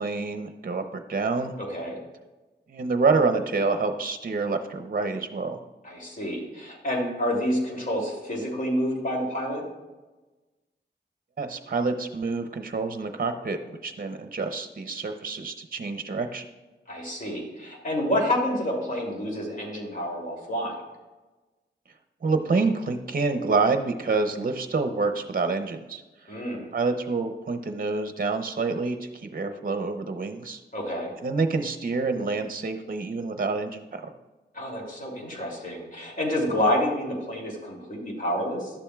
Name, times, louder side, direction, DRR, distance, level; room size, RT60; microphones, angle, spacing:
voice 1, 0.0-1.5 2.7-5.6 11.4-16.4 22.2-26.0 26.7-30.6 31.2-34.1, right 4 dB, 50° right, 7 dB, 0.7 m, -27 dB
voice 2, 1.6-2.0 5.8-9.6 16.9-20.7 26.3-26.7 30.7-31.1 34.5-38.7, left 1 dB, 45° left, -2 dB, 2.8 m, -28 dB
11.5 x 7.0 x 2.3 m, 1.2 s
cardioid pair, 55°, 19 cm